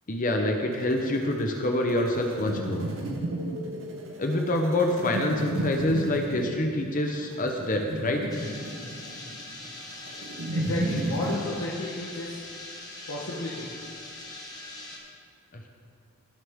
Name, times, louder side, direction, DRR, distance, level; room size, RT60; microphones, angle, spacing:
voice 1, 0.1-2.9 4.2-8.3 15.5-15.7, left 1 dB, 40° left, 3 dB, 0.8 m, -26 dB
sound 1, 0.7-11.4, right 1 dB, 60° right, 1.3 m, -33 dB
sound 2, 8.3-15.0, left 2 dB, 15° left, 1.2 m, -42 dB
voice 2, 10.5-12.4 13.1-13.7, left 1 dB, 70° left, -5 dB, 1.3 m, -33 dB
18.0 x 6.8 x 3.6 m, 2.4 s
head